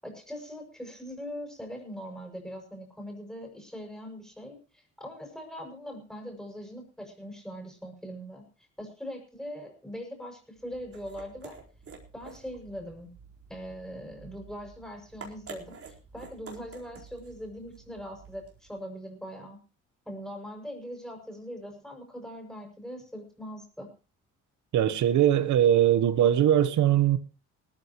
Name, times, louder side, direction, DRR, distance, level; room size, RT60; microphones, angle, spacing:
voice 1, 0.0-11.6 12.1-13.1 13.5-15.8 16.1-19.6 20.0-23.9, equal, ahead, 6.6 m, -41 dB
sound 1, 10.6-18.8, right 5 dB, 50° right, 4.4 m, -49 dB
voice 2, 24.7-27.2, right 11 dB, 75° right, 1.2 m, -21 dB
19.0 x 14.0 x 3.1 m
cardioid pair, 90°, 30 cm